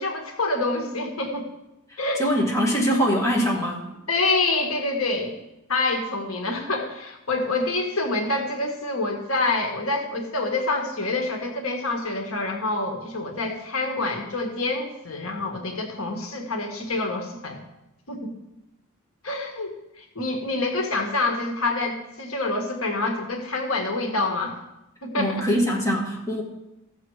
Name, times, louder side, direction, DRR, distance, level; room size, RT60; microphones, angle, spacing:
voice 1, 0.0-1.5 2.0-2.2 4.1-5.4 5.7-17.6 18.1-18.3 19.2-24.6 25.0-25.3, left 2 dB, 80° left, 3 dB, 1.7 m, -27 dB
voice 2, 1.9-3.9 25.1-26.4, equal, 15° left, -2 dB, 2.1 m, -23 dB
15.5 x 6.9 x 4.9 m, 0.90 s
head